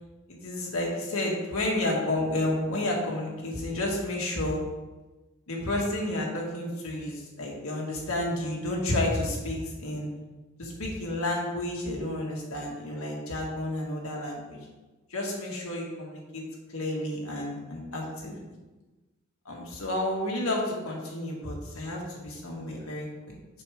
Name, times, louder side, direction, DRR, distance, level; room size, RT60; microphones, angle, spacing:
voice 1, 0.3-4.6 5.5-10.1 10.6-14.6 15.1-16.4 16.7-18.4 19.4-23.1, left 1 dB, 75° left, -2 dB, 1.7 m, -31 dB
6.8 x 6.2 x 3.5 m, 1.2 s
head